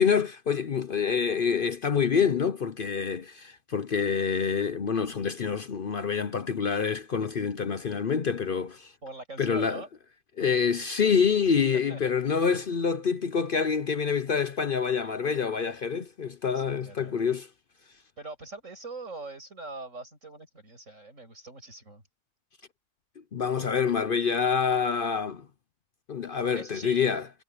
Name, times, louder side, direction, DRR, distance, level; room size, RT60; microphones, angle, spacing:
voice 1, 0.0-8.9 9.4-9.8 10.4-17.5 23.3-25.5 26.1-27.2, left 6 dB, 50° left, 0.8 m, -26 dB
voice 2, 9.0-9.9 11.9-12.1 12.5-12.7 16.5-17.3 18.2-22.0 26.5-27.0, right 2 dB, 75° right, 8.1 m, -43 dB
omnidirectional pair, 1.3 m